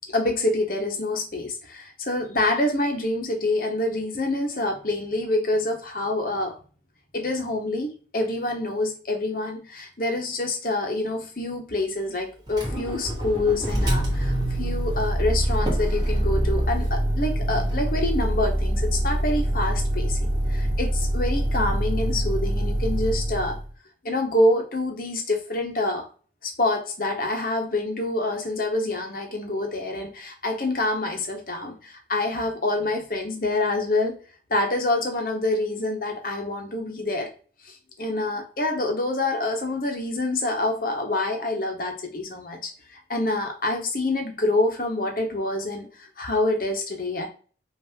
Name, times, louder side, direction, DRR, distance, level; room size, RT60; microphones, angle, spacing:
voice 1, 0.1-6.5 7.1-20.2 20.5-23.6 24.0-26.1 26.4-34.1 34.5-37.3 37.6-47.3, left 2 dB, 50° left, 2 dB, 1.2 m, -26 dB
Motor vehicle (road), 12.5-23.7, equal, 20° right, 1.7 m, -25 dB
5.6 x 2.9 x 2.9 m, 0.38 s
head